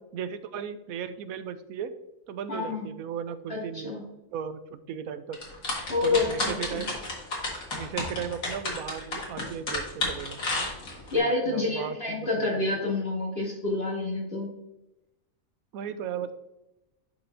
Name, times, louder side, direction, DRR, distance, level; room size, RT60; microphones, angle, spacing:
voice 1, 0.1-1.9 2.3-3.9 4.3-5.4 6.0-6.9 7.7-10.4 11.1-12.5 15.7-16.3, right 8 dB, 90° right, 11 dB, 1.1 m, -36 dB
voice 2, 2.5-2.9 3.5-4.0 5.9-6.8 11.1-14.5, left 3 dB, 45° left, -5 dB, 2.9 m, -28 dB
sound 1, 5.3-11.2, left 2 dB, 80° left, 2.4 m, -31 dB
11.0 x 4.8 x 2.7 m, 0.92 s
omnidirectional pair, 1.5 m